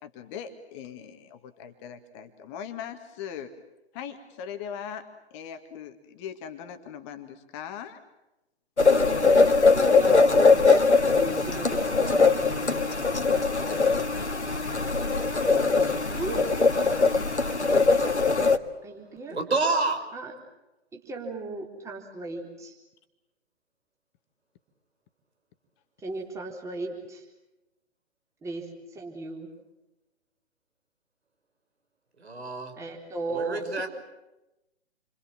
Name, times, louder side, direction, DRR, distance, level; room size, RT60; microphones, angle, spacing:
voice 1, 0.0-3.5 3.9-8.0, left 8 dB, 25° left, 8 dB, 2.0 m, -40 dB
sound 1, 8.8-18.6, left 4 dB, 85° left, 1.9 m, -21 dB
voice 2, 9.2-10.8 11.0-12.9 13.2-14.6 15.5-16.6 18.8-19.4 20.1-20.3 20.9-22.8 26.0-27.2 28.4-29.5 32.7-33.9, right 3 dB, 10° right, 0 dB, 3.9 m, -37 dB
voice 3, 19.3-20.0 32.2-32.7 33.3-33.9, right 3 dB, 70° right, 7 dB, 5.8 m, -28 dB
29.5 x 25.0 x 7.5 m, 0.95 s
figure-of-eight pair, 130°, 33 cm